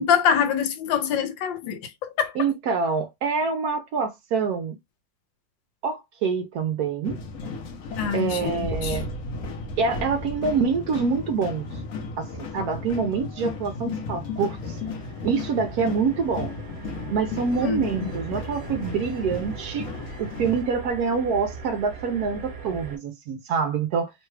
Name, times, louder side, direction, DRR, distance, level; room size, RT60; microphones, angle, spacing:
voice 1, 0.0-2.3 8.0-9.0 17.6-18.1, left 7 dB, 85° left, 1.4 m, -25 dB
voice 2, 2.4-4.8 5.8-7.2 8.1-9.1 9.8-11.6 12.2-14.8 15.2-16.5 17.1-19.9 20.2-24.1, right 5 dB, 70° right, 0.9 m, -26 dB
sound 1, 7.0-20.6, left 3 dB, 60° left, 1.0 m, -34 dB
sound 2, 14.5-23.0, right 4 dB, 45° right, 1.4 m, -40 dB
3.3 x 2.2 x 3.1 m
omnidirectional pair, 2.0 m